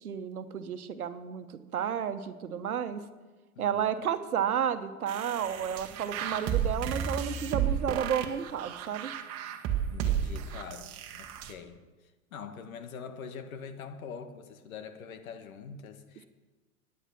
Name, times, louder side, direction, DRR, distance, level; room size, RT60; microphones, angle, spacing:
voice 1, 0.0-1.4 1.7-3.0 3.6-9.1, right 8 dB, 80° right, 1.2 m, -32 dB
voice 2, 3.5-3.9 9.9-11.8 12.3-16.3, left 6 dB, 70° left, 1.7 m, -44 dB
sound 1, 5.1-11.5, right 9 dB, 35° right, 1.4 m, -32 dB
17.0 x 10.0 x 6.0 m
hypercardioid pair, 110°, 43 cm